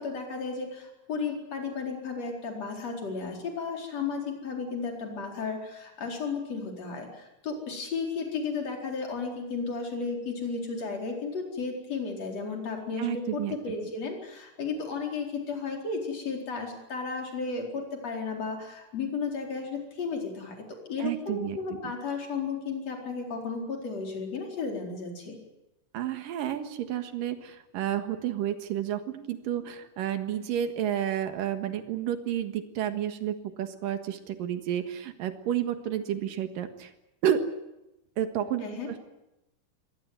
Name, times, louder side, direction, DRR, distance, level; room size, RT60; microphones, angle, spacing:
voice 1, 0.0-20.6 20.9-25.4 38.6-38.9, left 4 dB, 50° left, 2 dB, 5.4 m, -34 dB
voice 2, 13.0-13.5 21.0-21.6 25.9-36.9 37.2-37.5 38.2-39.0, right 10 dB, 90° right, 8 dB, 3.3 m, -31 dB
23.5 x 18.5 x 9.4 m, 0.93 s
omnidirectional pair, 3.8 m